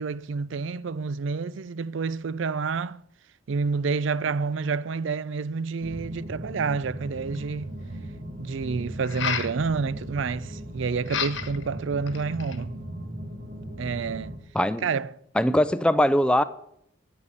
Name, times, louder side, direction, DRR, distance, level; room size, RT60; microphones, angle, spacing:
voice 1, 0.0-3.0 3.5-7.7 8.4-12.8 13.8-14.3 14.8-15.2, right 4 dB, 70° right, 0.4 m, -29 dB
sound 1, 5.8-14.4, right 1 dB, 50° right, 2.2 m, -38 dB
sound 2, 7.3-7.4 9.0-9.6 11.1-11.6 12.1-12.6, left 8 dB, 70° left, 1.3 m, -30 dB
voice 2, 14.5-14.9 15.4-16.4, left 1 dB, 5° left, 0.4 m, -21 dB
10.5 x 8.4 x 9.6 m
head